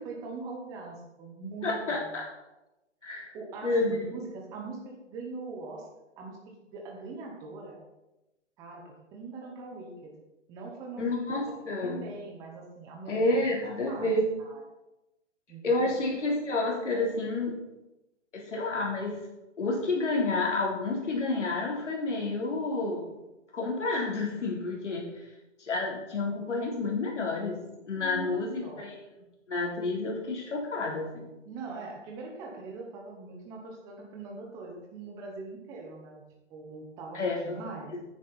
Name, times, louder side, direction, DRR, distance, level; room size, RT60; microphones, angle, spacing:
voice 1, 0.0-2.2 3.3-5.9 6.2-7.8 8.6-10.1 10.5-13.4 13.7-14.6 15.5-15.9 28.0-28.9 31.5-36.2 36.5-37.9, right 3 dB, 10° right, 0 dB, 0.8 m, -42 dB
voice 2, 1.6-2.2 3.0-3.3 3.6-4.0 11.0-12.0 13.1-14.2 15.6-17.5 18.3-19.2 19.6-23.1 23.5-25.1 25.6-27.6 27.9-28.9 29.5-31.3 37.1-37.6 37.9-38.0, left 2 dB, 70° left, -2 dB, 3.4 m, -29 dB
9.9 x 9.6 x 4.1 m, 0.98 s
hypercardioid pair, 155°, 37 cm